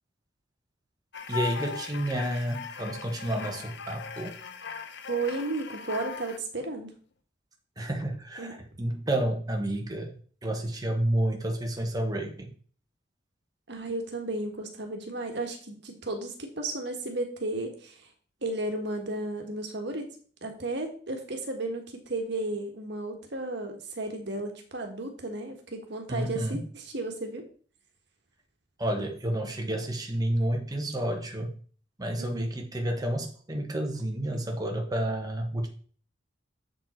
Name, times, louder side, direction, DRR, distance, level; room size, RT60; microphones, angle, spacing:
sound 1, 1.1-6.4, left 7 dB, 65° left, 0.9 m, -39 dB
voice 1, 1.3-4.4 7.8-10.1 10.4-12.5 26.1-26.6 28.8-31.6 32.0-35.7, right 1 dB, 20° right, 2 dB, 1.2 m, -30 dB
voice 2, 5.1-6.9 8.4-8.5 13.7-18.1 18.4-20.0 20.4-27.4 32.2-32.5, right 2 dB, 65° right, 4 dB, 1.5 m, -34 dB
7.5 x 5.3 x 4.3 m, 0.43 s
head